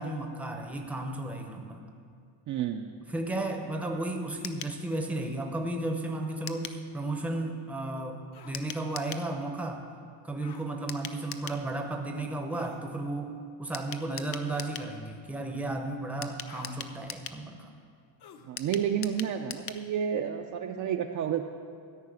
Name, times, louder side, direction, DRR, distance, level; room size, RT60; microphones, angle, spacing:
voice 1, 0.0-1.8 3.1-9.8 10.2-17.7, right 2 dB, 5° right, 3 dB, 0.7 m, -34 dB
voice 2, 2.5-2.9 18.4-21.4, right 8 dB, 40° right, 4 dB, 0.4 m, -30 dB
sound 1, 4.4-4.8 6.5-6.8 8.5-9.3 10.9-11.6 13.7-14.9 16.2-17.4 18.6-19.8 20.1-20.2 20.5-20.6, left 8 dB, 35° left, 0.4 m, -41 dB
sound 2, 8.3-8.6 10.4-10.7 12.5-12.8 14.5-14.8 16.5-16.8 18.2-18.5, left 7 dB, 55° left, 1.0 m, -50 dB
13.5 x 5.7 x 9.0 m, 2.4 s
cardioid pair, 175°, 46 cm